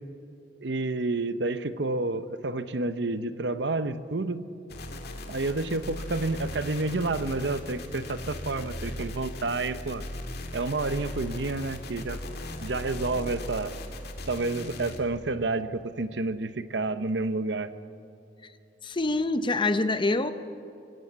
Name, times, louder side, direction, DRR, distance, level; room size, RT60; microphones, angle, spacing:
voice 1, 0.6-4.5 5.3-10.0 10.5-12.2 12.6-13.7 14.3-17.7, right 2 dB, 70° right, 12 dB, 0.9 m, -29 dB
sound 1, 4.7-15.0, left 1 dB, 60° left, 2.0 m, -38 dB
voice 2, 18.8-20.3, left 2 dB, 25° left, 11 dB, 0.8 m, -25 dB
24.5 x 15.5 x 8.1 m, 2.6 s
head